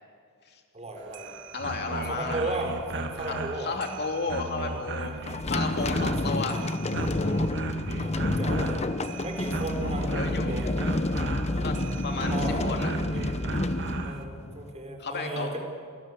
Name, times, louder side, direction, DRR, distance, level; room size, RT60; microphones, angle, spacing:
voice 1, 0.7-1.3 2.1-3.8 5.2-5.3 5.8-5.9 6.6-6.7 8.0-8.8 9.2-10.8 11.5-11.7 12.3-12.6 13.1-13.3 13.8-15.6, right 2 dB, 30° right, 3 dB, 3.9 m, -35 dB
sound 1, 1.0-14.2, right 2 dB, 55° right, 1.5 m, -36 dB
voice 2, 1.5-2.6 3.3-5.2 5.5-6.7 10.1-10.5 11.6-11.8 12.0-12.4 12.7-13.3 15.0-15.6, left 3 dB, 50° left, 3 dB, 2.8 m, -33 dB
sound 2, 5.3-14.7, left 2 dB, 30° left, 0.8 m, -29 dB
28.0 x 13.5 x 9.4 m, 2.2 s
head